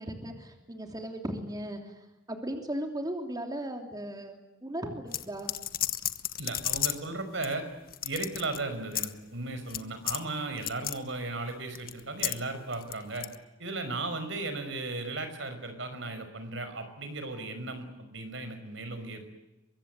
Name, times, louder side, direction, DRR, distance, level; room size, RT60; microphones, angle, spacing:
voice 1, 0.0-5.5, right 1 dB, 20° right, 4 dB, 3.2 m, -37 dB
sound 1, 5.1-7.1 7.4-7.5 7.9-8.6 8.9-9.1 9.7-9.8 10.1-10.2 10.6-11.0 11.7-12.4 12.7-13.3, left 12 dB, 50° left, 1.3 m, -32 dB
voice 2, 6.4-7.7 8.0-13.3 13.6-19.3, right 2 dB, 70° right, 9 dB, 5.5 m, -36 dB
24.0 x 23.5 x 9.6 m, 1.0 s
head